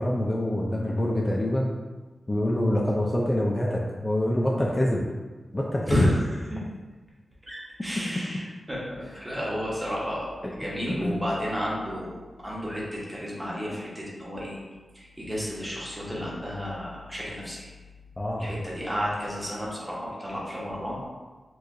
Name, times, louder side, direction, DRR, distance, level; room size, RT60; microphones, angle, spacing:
voice 1, 0.0-1.8 2.3-5.0 5.5-6.1 9.2-9.3 10.9-11.2 18.2-18.5, left 1 dB, 25° left, -3 dB, 0.4 m, -26 dB
voice 2, 5.9-6.6 7.5-8.4 8.7-10.3 10.6-14.6 14.9-17.6 18.4-21.0, equal, 15° right, -5 dB, 1.2 m, -31 dB
4.5 x 2.4 x 2.6 m, 1.3 s
cardioid pair, 55°, 0 cm